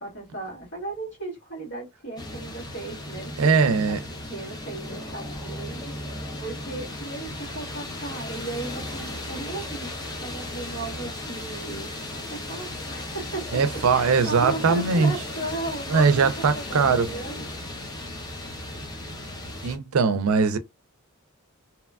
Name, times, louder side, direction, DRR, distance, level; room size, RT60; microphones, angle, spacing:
voice 1, 0.0-9.9 10.2-11.9 12.3-13.5 13.9-17.4 18.9-19.1, right 2 dB, 55° left, 1.7 m, -36 dB
sound 1, 2.2-19.8, left 1 dB, 20° left, 0.6 m, -36 dB
voice 2, 3.4-4.0 13.5-15.1 15.9-17.1 19.6-20.6, right 5 dB, 75° right, 0.4 m, -21 dB
2.9 x 2.2 x 2.3 m
head